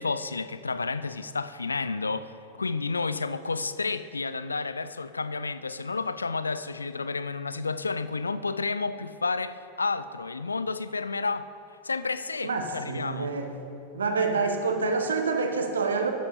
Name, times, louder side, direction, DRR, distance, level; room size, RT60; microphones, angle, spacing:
voice 1, 0.0-11.5 11.8-13.3, left 4 dB, 75° left, 0.3 m, -31 dB
voice 2, 12.4-13.5 13.9-16.1, right 4 dB, 70° right, 1.0 m, -27 dB
11.5 x 11.0 x 2.8 m
figure-of-eight pair, 90°, 0 cm